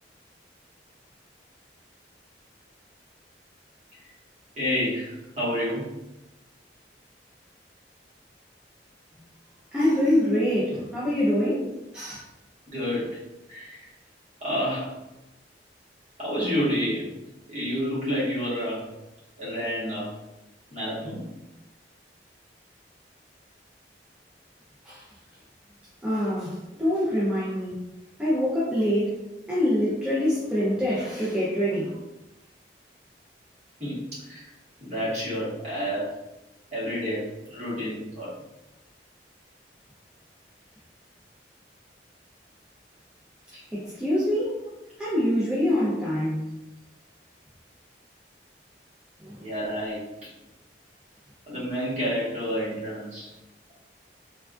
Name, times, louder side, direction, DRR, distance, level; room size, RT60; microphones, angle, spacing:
voice 1, 4.6-5.9 12.7-13.2 13.5-13.9 14.4-14.9 16.2-17.2 17.5-18.9 19.4-20.1 20.7-21.2 33.8-34.4 34.8-36.1 36.7-38.3 43.5-43.6 49.4-50.3 51.5-53.3, equal, 40° right, -8 dB, 1.3 m, -29 dB
voice 2, 9.7-11.7 11.9-12.2 24.8-25.0 26.0-27.8 28.2-29.1 29.5-31.9 43.7-44.5 45.0-46.5 49.2-49.4, equal, 5° right, -9 dB, 0.5 m, -25 dB
3.3 x 2.3 x 2.4 m, 0.96 s
head